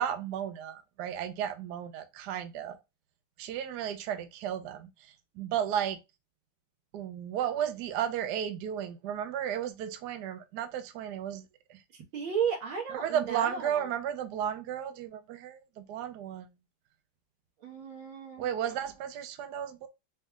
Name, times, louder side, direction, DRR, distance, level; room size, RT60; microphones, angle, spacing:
voice 1, 0.0-2.8 3.4-6.0 6.9-11.4 11.7-11.8 12.9-16.5 18.4-19.9, right 9 dB, 70° right, 1.1 m, -34 dB
voice 2, 12.1-13.9 17.6-18.5, right 7 dB, 85° right, 2.1 m, -34 dB
5.2 x 2.3 x 3.6 m
omnidirectional pair, 2.1 m